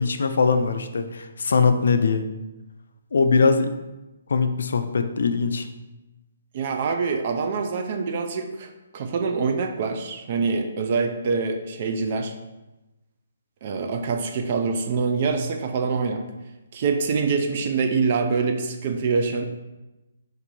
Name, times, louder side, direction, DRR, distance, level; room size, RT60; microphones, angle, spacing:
voice 1, 0.0-2.2 3.1-3.7 4.3-5.7, left 4 dB, 70° left, 8 dB, 0.4 m, -21 dB
voice 2, 6.5-12.3 13.6-16.3 16.7-19.4, right 4 dB, 30° right, 5 dB, 0.4 m, -25 dB
4.1 x 2.6 x 4.4 m, 1.0 s
hypercardioid pair, 175°, 0 cm